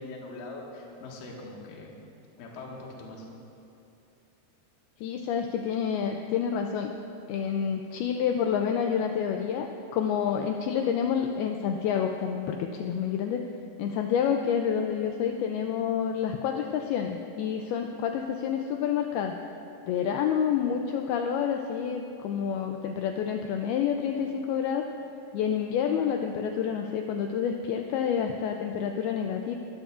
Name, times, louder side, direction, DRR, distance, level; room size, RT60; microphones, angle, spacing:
voice 1, 0.0-1.9 2.4-3.3, left 2 dB, 60° left, -2 dB, 2.9 m, -42 dB
voice 2, 5.0-6.9 7.3-13.4 13.8-19.4 19.9-24.8 25.3-29.6, left 8 dB, 85° left, 4 dB, 2.2 m, -28 dB
21.5 x 13.5 x 2.5 m, 2.7 s
omnidirectional pair, 5.0 m